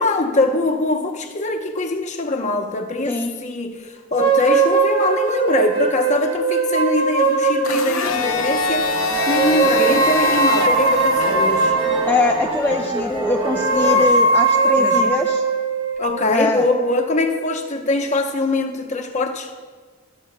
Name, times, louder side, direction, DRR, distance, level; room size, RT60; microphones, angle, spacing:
voice 1, 0.0-8.9 9.3-11.8 13.9-14.0 14.8-15.2 16.0-19.5, left 2 dB, 35° left, 4 dB, 0.8 m, -22 dB
sound 1, 4.2-8.4 9.1-12.5 13.4-17.7, right 3 dB, 80° right, 0.9 m, -20 dB
Domestic sounds home sounds, 7.6-11.7, left 4 dB, 85° left, 0.7 m, -24 dB
sound 2, 8.0-14.0, right 2 dB, 25° right, 1.4 m, -28 dB
voice 2, 12.1-15.4 16.3-16.7, left 2 dB, 10° left, 2 dB, 0.4 m, -22 dB
13.5 x 12.0 x 2.2 m, 1.5 s
head